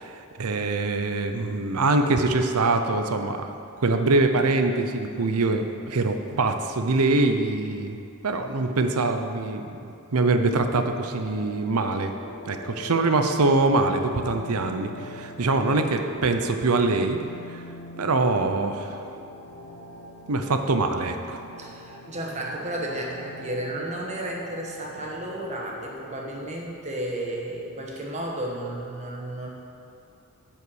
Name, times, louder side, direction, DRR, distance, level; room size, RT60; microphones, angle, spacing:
voice 1, 0.0-3.5 3.8-9.7 10.1-12.1 12.5-17.2 17.5-17.6 18.0-19.0 20.3-21.4, right 3 dB, 75° right, 6 dB, 0.7 m, -24 dB
sound 1, 10.2-26.6, left 1 dB, 45° left, 1.3 m, -43 dB
voice 2, 21.6-29.5, right 1 dB, 30° right, -1 dB, 1.2 m, -33 dB
9.0 x 5.6 x 6.4 m, 2.6 s
head